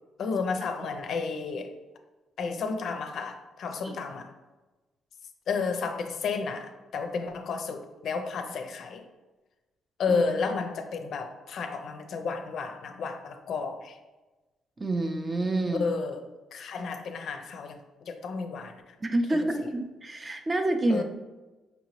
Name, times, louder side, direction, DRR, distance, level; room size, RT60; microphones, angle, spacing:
voice 1, 0.2-1.7 2.4-4.3 5.5-9.1 10.0-14.0 15.7-16.2 16.5-19.0 19.3-19.7 20.9-21.0, left 4 dB, 65° left, 6 dB, 0.4 m, -32 dB
voice 2, 14.8-15.9 19.0-21.0, right 2 dB, 25° right, 6 dB, 0.4 m, -28 dB
5.2 x 2.8 x 3.0 m, 1.2 s
cardioid pair, 90°, 0 cm